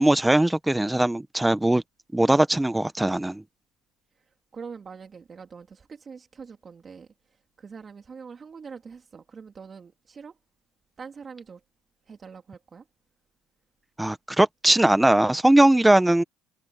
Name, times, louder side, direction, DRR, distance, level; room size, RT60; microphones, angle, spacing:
voice 1, 0.0-1.8 2.1-3.4 14.0-16.2, right 1 dB, 10° right, 1.1 m, -20 dB
voice 2, 4.2-10.4 11.0-11.6 12.1-12.8, right 5 dB, 35° right, 2.9 m, -44 dB
supercardioid pair, 90°, 0 cm